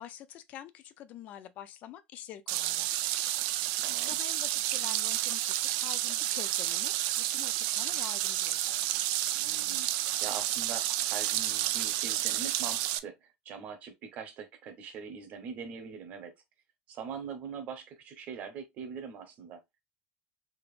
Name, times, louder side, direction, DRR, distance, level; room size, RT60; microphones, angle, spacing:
voice 1, 0.0-3.4 3.7-9.1, left 11 dB, 50° left, 0.4 m, -47 dB
sound 1, 2.5-13.0, right 14 dB, 80° right, 0.3 m, -30 dB
voice 2, 3.8-4.2 9.3-9.9 10.2-16.3 16.9-19.6, right 6 dB, 45° right, 0.9 m, -42 dB
3.5 x 2.8 x 2.5 m
cardioid pair, 155°, 3 cm